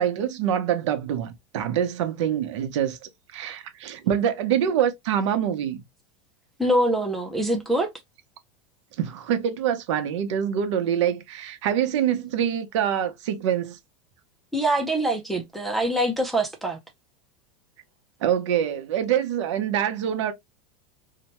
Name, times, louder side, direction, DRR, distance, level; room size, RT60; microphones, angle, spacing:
voice 1, 0.0-5.8 9.0-13.8 18.2-20.3, right 9 dB, 80° right, 0.8 m, -25 dB
voice 2, 6.6-7.9 14.5-16.8, right 1 dB, ahead, 0.4 m, -24 dB
2.8 x 2.1 x 2.9 m
supercardioid pair, 160°, 15 cm